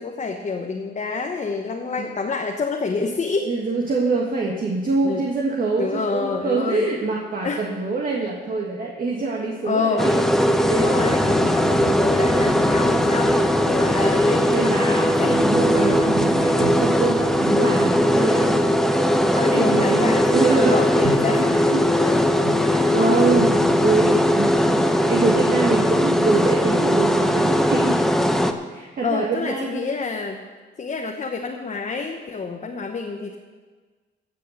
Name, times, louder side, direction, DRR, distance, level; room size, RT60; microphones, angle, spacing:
voice 1, 0.0-3.5 4.4-4.5 5.0-5.2 5.8-7.0 7.4-7.7 9.6-10.1 10.7-15.4 15.7-16.2 19.3-22.2 22.5-22.9 24.4-24.7 29.0-30.4 30.8-33.4, left 4 dB, 35° left, 2 dB, 1.1 m, -28 dB
voice 2, 3.5-10.9 14.4-18.6 19.5-20.8 21.4-21.8 22.6-28.0 28.7-29.8, right 3 dB, 45° right, -2 dB, 1.9 m, -25 dB
sound 1, 10.0-28.5, equal, ahead, 0.9 m, -19 dB
sound 2, 10.5-19.0 19.3-19.4 21.0-21.3 21.5-24.6, right 1 dB, 20° right, 4.2 m, -34 dB
16.0 x 6.5 x 6.6 m, 1.4 s
cardioid pair, 90°, 20 cm